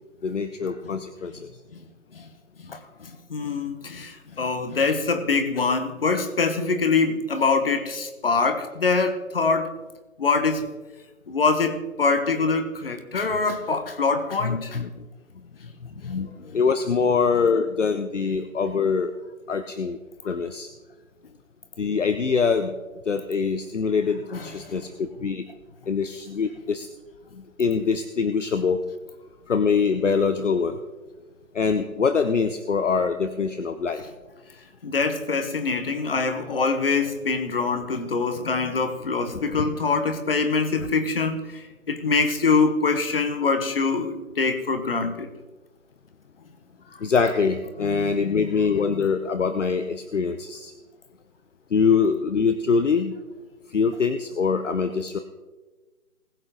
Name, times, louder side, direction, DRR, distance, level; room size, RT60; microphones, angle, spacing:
voice 1, 0.2-1.5 14.4-15.1 15.8-19.1 19.5-20.0 20.2-20.7 21.8-22.7 23.1-25.5 25.9-26.9 27.3-28.8 29.5-30.8 31.5-34.0 39.5-39.7 47.0-50.7 51.7-53.1 53.7-55.2, left 5 dB, 60° left, 9 dB, 0.9 m, -24 dB
voice 2, 2.6-9.7 10.2-10.7 11.3-14.8 24.4-24.9 34.8-45.3 47.8-48.4 48.7-49.0, left 4 dB, 40° left, 8 dB, 1.4 m, -24 dB
20.0 x 7.7 x 3.8 m, 1.2 s
figure-of-eight pair, 160°, 42 cm